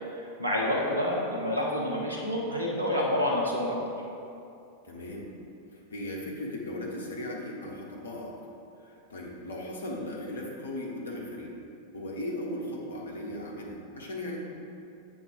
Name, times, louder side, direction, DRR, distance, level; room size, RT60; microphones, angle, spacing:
voice 1, 0.1-3.9, left 1 dB, 75° right, -2 dB, 1.0 m, -28 dB
voice 2, 4.8-5.3 5.7-8.4 8.8-11.5 11.9-14.4, left 1 dB, 65° left, -2 dB, 1.1 m, -37 dB
7.2 x 3.6 x 5.2 m, 2.7 s
figure-of-eight pair, 90°, 0 cm